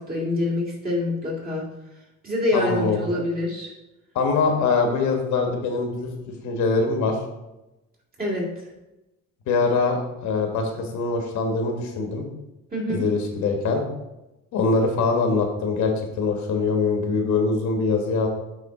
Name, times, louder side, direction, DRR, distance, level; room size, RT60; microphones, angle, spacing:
voice 1, 0.0-1.6 2.2-3.7 8.2-8.4 12.7-13.0, left 2 dB, 30° right, -3 dB, 2.2 m, -25 dB
voice 2, 2.5-3.1 4.1-6.1 6.4-7.2 9.5-12.2 12.9-13.8 14.5-18.3, left 4 dB, 80° left, 3 dB, 1.5 m, -23 dB
8.8 x 3.7 x 3.7 m, 0.95 s
cardioid pair, 145°, 29 cm